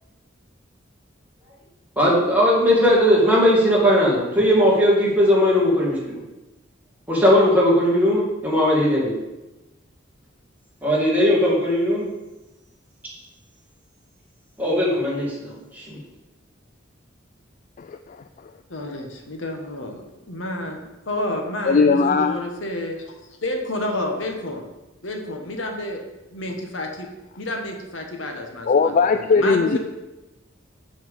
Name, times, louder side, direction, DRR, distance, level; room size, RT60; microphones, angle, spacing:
voice 1, 2.0-6.2 7.1-9.1 10.8-12.0 14.6-16.0, equal, 10° right, -6 dB, 2.3 m, -18 dB
voice 2, 17.8-18.2 21.7-22.4 28.7-29.8, left 4 dB, 40° left, 8 dB, 0.3 m, -18 dB
voice 3, 18.7-24.6 25.0-26.0 26.3-27.1 27.4-29.8, left 1 dB, 75° left, 3 dB, 1.3 m, -30 dB
7.0 x 6.3 x 5.3 m, 1.0 s
head